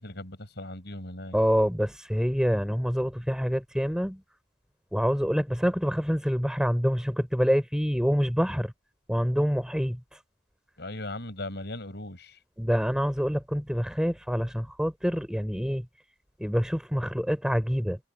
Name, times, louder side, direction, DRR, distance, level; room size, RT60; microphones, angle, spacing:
voice 1, 0.0-1.4 10.8-12.4, left 1 dB, 55° left, 7.7 m, -38 dB
voice 2, 1.3-4.2 4.9-8.7 9.1-10.2 12.6-15.8 16.4-18.0, equal, 5° right, 4.8 m, -26 dB
head